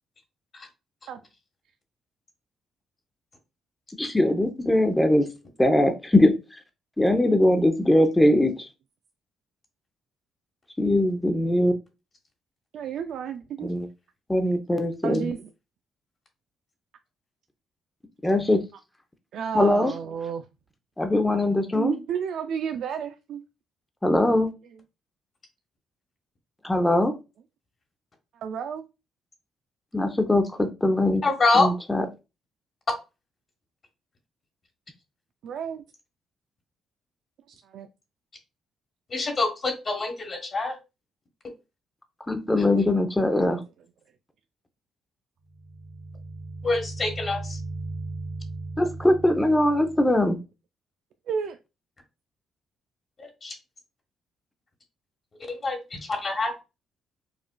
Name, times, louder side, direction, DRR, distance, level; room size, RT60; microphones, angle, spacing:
voice 1, 4.0-5.3 5.6-6.3 7.0-8.7 10.8-11.7 13.6-13.9 14.3-15.2 18.2-18.6 19.5-19.9 21.0-21.9 24.0-24.5 26.6-27.1 29.9-31.2 31.5-32.1 42.3-43.6 48.8-50.4, left 1 dB, 10° left, 0.6 m, -21 dB
voice 2, 12.7-13.7 15.0-15.5 19.3-20.5 21.7-23.4 24.7-24.8 28.3-28.8 35.4-35.8 37.6-37.9 51.3-51.6, right 7 dB, 75° right, 0.3 m, -31 dB
voice 3, 31.2-31.7 39.1-40.7 46.6-47.6 53.2-53.5 55.5-56.6, left 3 dB, 40° left, 1.3 m, -26 dB
sound 1, 45.5-50.2, right 3 dB, 45° right, 1.3 m, -37 dB
4.8 x 2.4 x 2.2 m
cardioid pair, 90°, 0 cm